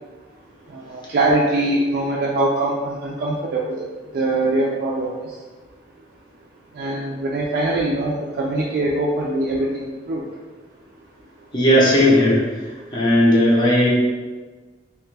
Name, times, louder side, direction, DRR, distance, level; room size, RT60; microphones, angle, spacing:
voice 1, 0.7-3.8 4.1-5.1 6.8-10.2, right 2 dB, 55° right, -4 dB, 0.3 m, -22 dB
voice 2, 11.5-12.4 12.9-13.9, left 1 dB, 25° left, -4 dB, 0.7 m, -15 dB
2.9 x 2.2 x 3.2 m, 1.3 s
head